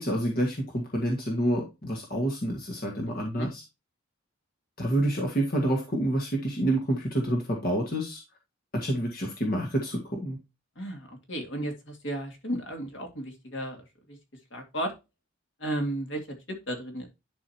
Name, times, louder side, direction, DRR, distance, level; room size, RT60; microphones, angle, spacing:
voice 1, 0.0-3.6 4.8-8.2 8.7-10.4, right 1 dB, 45° left, 0 dB, 1.8 m, -28 dB
voice 2, 3.1-3.5 10.8-14.2 14.5-14.9 15.6-16.4 16.7-17.1, right 1 dB, 65° left, 2 dB, 2.6 m, -34 dB
11.0 x 5.5 x 2.8 m, 0.24 s
head